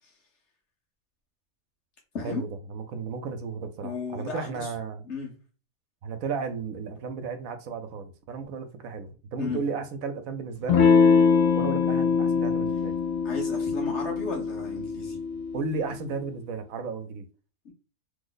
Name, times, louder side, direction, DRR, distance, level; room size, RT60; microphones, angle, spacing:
voice 1, 2.2-5.0 6.0-10.8 11.5-12.9 15.5-17.3, right 5 dB, 80° right, 1.0 m, -34 dB
voice 2, 3.8-4.7 5.1-5.3 9.4-9.6 13.2-15.2 17.6-17.7, left 4 dB, 55° left, 1.2 m, -34 dB
Electric guitar / Strum, 10.7-15.8, left 5 dB, 80° left, 1.1 m, -23 dB
3.1 x 2.0 x 3.8 m
omnidirectional pair, 1.5 m